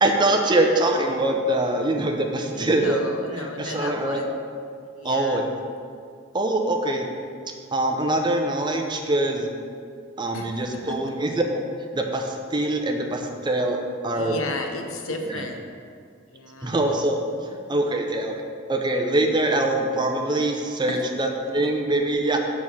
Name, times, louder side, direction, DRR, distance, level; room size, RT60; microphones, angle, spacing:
voice 1, 0.0-3.0 3.3-4.2 5.0-5.5 6.3-7.1 7.7-9.5 10.2-11.4 11.9-13.8 14.0-14.4 15.3-15.5 16.6-17.2 17.7-18.3 18.7-22.4, right 1 dB, 20° right, 3 dB, 0.6 m, -23 dB
voice 2, 2.6-4.3 5.0-5.4 10.3-11.0 14.1-15.6 16.3-16.7 20.9-21.0, left 2 dB, 90° left, 4 dB, 0.8 m, -34 dB
6.8 x 4.2 x 6.1 m, 2.2 s
head